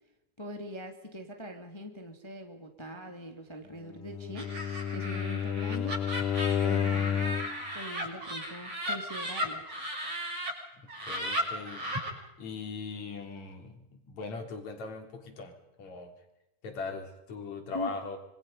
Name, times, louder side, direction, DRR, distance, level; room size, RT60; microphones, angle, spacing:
voice 1, 0.4-4.5 4.9-6.0 6.6-7.3 7.7-9.7 17.7-17.9, equal, 10° left, 4 dB, 1.9 m, -42 dB
Bowed string instrument, 4.0-7.6, left 8 dB, 75° left, 2.6 m, -30 dB
Laughter, 4.3-10.5 10.9-12.1, equal, 50° right, 7.6 m, -36 dB
voice 2, 10.8-11.8 12.4-15.5 15.8-16.1 16.6-18.2, left 4 dB, 55° left, 3 dB, 4.7 m, -40 dB
27.5 x 25.0 x 5.4 m, 0.90 s
omnidirectional pair, 3.8 m